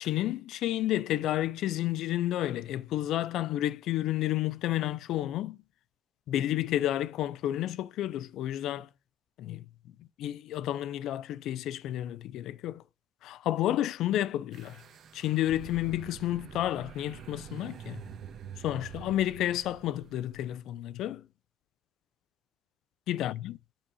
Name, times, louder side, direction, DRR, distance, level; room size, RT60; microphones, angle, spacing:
voice 1, 0.0-5.6 6.3-8.9 9.4-9.7 10.2-12.8 13.2-14.8 15.1-18.0 18.6-21.2 23.1-23.6, left 13 dB, 90° left, 0.3 m, -31 dB
sound 1, 14.5-20.5, right 8 dB, 65° right, 1.5 m, -46 dB
5.7 x 5.3 x 6.2 m
cardioid pair, 135°, 0 cm